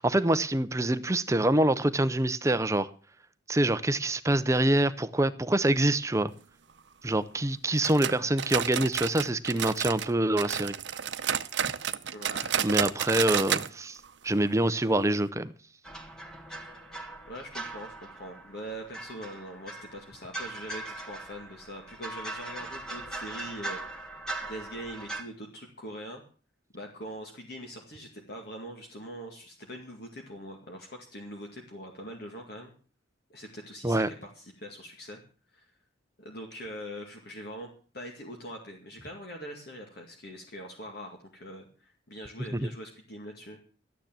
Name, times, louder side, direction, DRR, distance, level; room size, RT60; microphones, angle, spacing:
voice 1, 0.0-2.9 3.5-6.3 7.0-10.7 12.6-14.0 14.2-15.5 33.8-34.1 42.5-42.7, right 1 dB, 15° right, 13 dB, 0.5 m, -25 dB
sound 1, 7.8-10.1 10.4-13.7 14.0-14.1 14.5-14.6 15.1-15.2, right 8 dB, 65° right, 0.7 m, -30 dB
voice 2, 12.1-12.6 16.5-16.9 17.3-23.9 24.5-26.2 26.7-32.7 33.3-35.2 35.5-35.6 36.2-43.6, equal, 55° left, 1 dB, 2.2 m, -43 dB
sound 2, 15.8-25.2, right 2 dB, 5° left, 1.8 m, -40 dB
13.0 x 9.5 x 7.5 m, 0.40 s
head